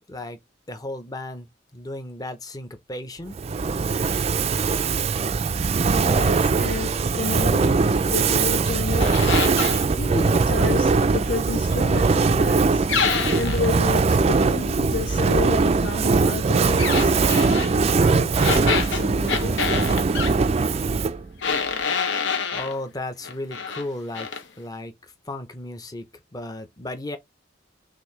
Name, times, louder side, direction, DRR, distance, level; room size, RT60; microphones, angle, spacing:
voice 1, 0.1-0.4 0.7-1.5 1.7-3.4 22.5-24.9 25.3-26.0 26.3-27.2, left 1 dB, 20° left, 0.7 m, -34 dB
Fire, 3.3-21.3, right 4 dB, 35° right, 0.4 m, -21 dB
voice 2, 6.0-7.8 8.1-9.4 9.9-12.8 13.3-18.3 18.9-19.6, left 4 dB, 60° left, 1.9 m, -31 dB
sound 1, 9.0-9.9 12.9-13.7 16.8-17.7 18.4-20.3 21.4-22.7 23.2-23.9 24.1-24.4, left 6 dB, 80° left, 1.0 m, -26 dB
6.1 x 2.7 x 3.2 m
head